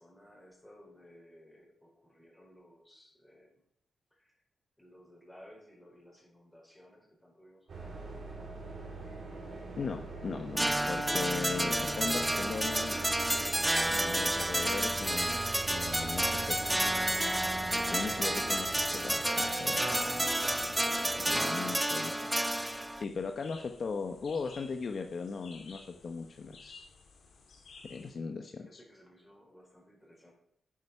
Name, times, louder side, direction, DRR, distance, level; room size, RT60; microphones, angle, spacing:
voice 1, 0.0-3.5 4.1-4.3 4.8-8.6 23.5-23.6 28.1-30.3, equal, 5° left, -2 dB, 4.5 m, -58 dB
sound 1, 7.7-21.4, right 3 dB, 60° right, 3.2 m, -43 dB
voice 2, 9.8-13.0 13.9-15.4 15.7-16.8 17.9-20.0 21.3-22.2 22.9-26.9 27.8-28.8, left 5 dB, 50° left, 5 dB, 0.9 m, -38 dB
sound 2, 10.6-23.0, right 1 dB, 10° right, 0.5 m, -30 dB
sound 3, 19.3-28.1, left 4 dB, 75° left, 2.5 m, -55 dB
9.9 x 8.8 x 5.7 m, 0.72 s
wide cardioid pair, 115°, 0 cm